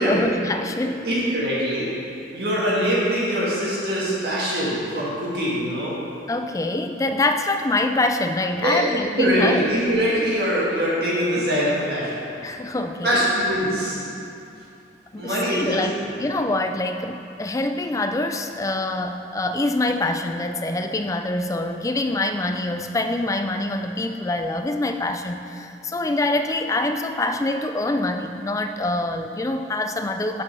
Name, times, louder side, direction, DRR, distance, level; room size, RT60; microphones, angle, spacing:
voice 1, 0.0-1.1 6.3-9.7 12.4-13.2 15.1-30.4, left 2 dB, 15° left, 6 dB, 0.3 m, -25 dB
voice 2, 1.0-1.9 2.3-5.9 8.6-8.8 9.2-12.2 13.0-14.0 15.2-16.1, equal, 55° right, -7 dB, 1.8 m, -23 dB
8.0 x 5.3 x 5.3 m, 2.7 s
head